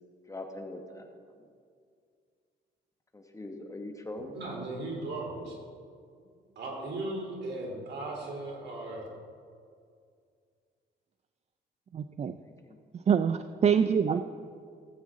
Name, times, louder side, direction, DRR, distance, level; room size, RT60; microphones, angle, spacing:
voice 1, 0.3-1.1 1.4-1.5 3.1-4.4 12.4-12.8 14.1-14.2, left 2 dB, 15° left, 4 dB, 1.3 m, -42 dB
voice 2, 4.3-5.6 6.5-9.1, right 2 dB, 60° right, -2 dB, 3.4 m, -37 dB
voice 3, 11.9-12.3 13.1-14.2, right 7 dB, 35° right, 11 dB, 0.4 m, -25 dB
17.0 x 8.4 x 3.7 m, 2.2 s
cardioid pair, 90°, 20 cm